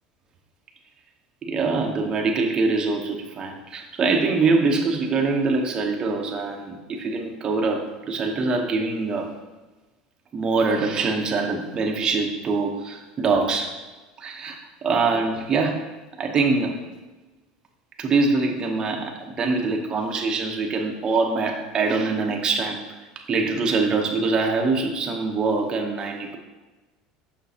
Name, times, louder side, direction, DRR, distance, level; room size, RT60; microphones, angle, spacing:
voice 1, 1.4-9.3 10.3-13.8 14.2-15.8 16.2-16.8 18.0-23.0 23.3-26.4, right 3 dB, 30° right, 2 dB, 0.8 m, -24 dB
6.2 x 6.0 x 2.8 m, 1.2 s
supercardioid pair, 125°, 3 cm